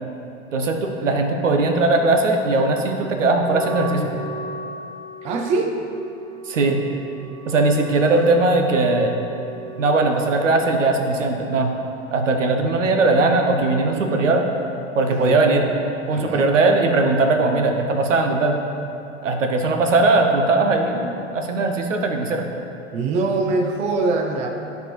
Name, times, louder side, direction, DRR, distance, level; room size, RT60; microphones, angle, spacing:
voice 1, 0.5-4.1 6.5-6.9 7.5-9.1 9.8-11.7 12.1-14.5 14.9-15.7 16.1-18.6 19.2-22.5, right 2 dB, 70° right, 3 dB, 0.9 m, -19 dB
Wind instrument woodwind instrument, 3.3-10.4, right 2 dB, 10° left, 1.2 m, -37 dB
voice 2, 5.2-5.7 15.1-15.4 16.1-16.5 22.9-24.5, right 3 dB, 20° right, 3 dB, 0.4 m, -23 dB
12.0 x 4.6 x 3.2 m, 2.9 s
figure-of-eight pair, 95°, 39 cm